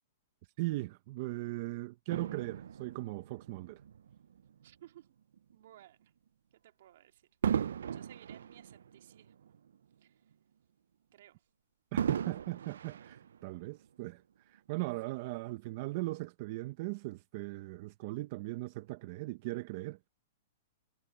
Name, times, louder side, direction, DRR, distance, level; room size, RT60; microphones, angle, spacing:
voice 1, 0.6-3.8 11.9-20.0, right 20 dB, 45° right, 0.7 m, -39 dB
Fireworks, 2.1-4.7 5.3-5.5 7.4-9.9 10.3-10.4 12.0-13.8 14.6-14.7, right 8 dB, 90° right, 0.3 m, -37 dB
voice 2, 4.6-5.2 5.5-6.1 6.5-7.2 7.5-9.5 10.0-10.2 11.1-11.4, right 13 dB, 60° right, 2.2 m, -58 dB
hypercardioid pair, 155°, 0 cm